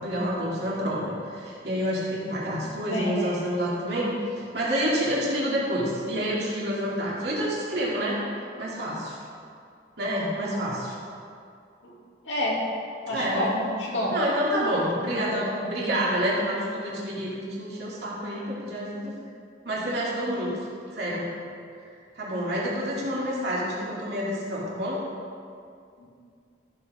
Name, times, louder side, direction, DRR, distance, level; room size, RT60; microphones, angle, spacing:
voice 1, 0.0-8.2 8.6-9.2 10.0-11.0 13.1-13.5 14.1-19.1 19.6-20.6 20.9-21.3 22.1-25.0, equal, 60° right, -6 dB, 2.9 m, -28 dB
voice 2, 2.8-3.2 11.8-11.9 12.2-12.6 13.1-14.1 15.3-15.5 26.0-26.1, left 1 dB, 85° left, -5 dB, 2.8 m, -28 dB
14.0 x 8.0 x 3.8 m, 2.4 s
head